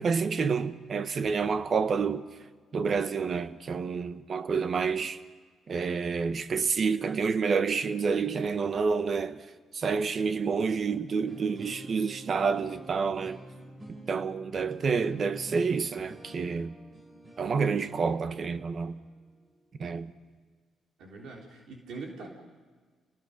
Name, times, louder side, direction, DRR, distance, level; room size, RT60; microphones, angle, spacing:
voice 1, 0.0-2.3 2.7-5.2 5.7-9.4 9.7-13.4 14.1-16.7 17.4-19.0 19.8-20.1, right 5 dB, 45° right, 1.2 m, -28 dB
sound 1, 11.3-20.2, right 1 dB, 25° right, 7.0 m, -49 dB
voice 2, 21.0-22.3, right 3 dB, 75° right, 3.7 m, -42 dB
29.5 x 20.0 x 5.3 m
cardioid pair, 90°, 0 cm